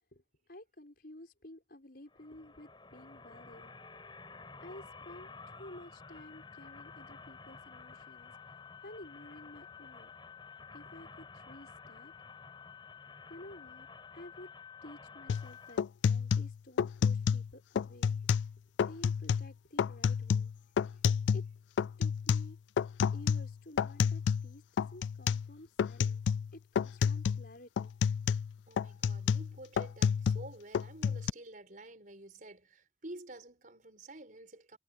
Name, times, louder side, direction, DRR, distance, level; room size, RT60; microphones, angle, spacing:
voice 1, 0.1-3.7 4.6-8.3 8.8-10.1 10.7-12.1 13.3-13.9 14.1-14.5 14.8-18.2 18.8-20.5 21.3-21.5 22.0-22.6 23.1-26.2 26.5-27.9, left 1 dB, 60° left, 6.0 m, -52 dB
sound 1, 2.1-15.8, left 5 dB, 25° left, 5.5 m, -51 dB
sound 2, 15.3-15.5 15.8-17.5 17.8-18.5 18.8-19.5 19.8-21.5 21.8-24.5 24.8-25.5 25.8-26.5 26.8-27.5 27.8-30.5 30.7-31.3, left 7 dB, 90° left, 0.3 m, -30 dB
voice 2, 28.7-34.8, right 1 dB, 50° right, 5.5 m, -50 dB
head